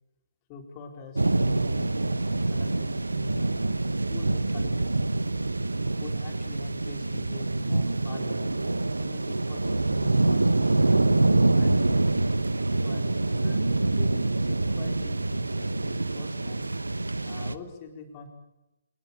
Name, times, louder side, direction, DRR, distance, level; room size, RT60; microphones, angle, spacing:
voice 1, 0.5-5.0 6.0-12.0 12.8-16.7 17.2-18.3, left 5 dB, 25° left, 4 dB, 4.4 m, -45 dB
sound 1, 1.2-17.5, right 2 dB, 75° right, 1.2 m, -25 dB
26.5 x 20.5 x 7.2 m, 0.95 s
figure-of-eight pair, 130°, 0 cm